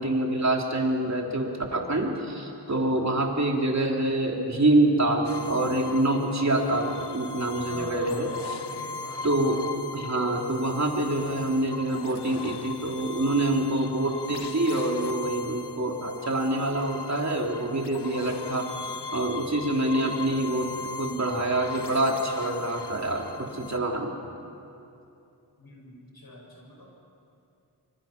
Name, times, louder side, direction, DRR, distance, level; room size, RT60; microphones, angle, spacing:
voice 1, 0.0-8.6 9.2-9.6 9.9-18.7 19.1-20.7 21.0-24.1, right 1 dB, 40° right, 0 dB, 3.3 m, -26 dB
sound 1, 5.2-23.8, left 4 dB, 90° left, 1.0 m, -39 dB
voice 2, 7.6-8.3 8.5-9.4 25.6-26.9, left 1 dB, 65° left, -3 dB, 6.8 m, -45 dB
26.0 x 25.5 x 6.0 m, 2.6 s
wide cardioid pair, 80°, 40 cm